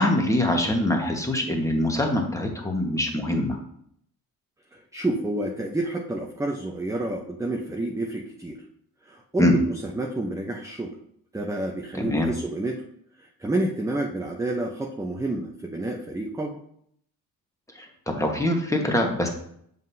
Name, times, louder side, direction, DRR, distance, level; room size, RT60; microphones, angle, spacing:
voice 1, 0.0-3.6 9.4-9.6 11.9-12.3 17.7-19.3, left 1 dB, 10° left, 2 dB, 1.4 m, -24 dB
voice 2, 4.7-8.6 9.0-11.0 11.3-12.8 13.2-16.6, right 2 dB, 10° right, 1 dB, 0.7 m, -29 dB
7.4 x 5.3 x 2.7 m, 0.69 s
cardioid pair, 80°, 38 cm